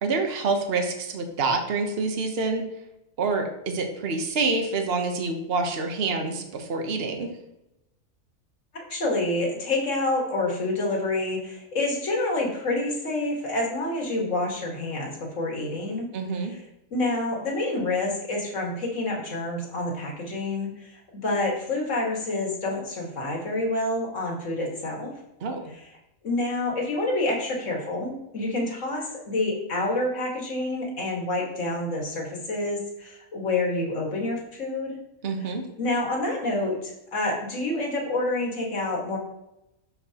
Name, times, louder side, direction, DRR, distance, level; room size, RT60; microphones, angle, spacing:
voice 1, 0.0-2.7 3.2-7.3 16.1-16.5 25.4-25.6 35.2-35.6, right 3 dB, 50° right, 4 dB, 1.2 m, -27 dB
voice 2, 8.9-16.1 16.5-16.6 16.9-25.1 26.2-35.0 35.4-35.5 35.8-39.2, left 2 dB, 70° left, -1 dB, 2.2 m, -28 dB
12.5 x 4.7 x 2.9 m, 0.88 s
omnidirectional pair, 1.4 m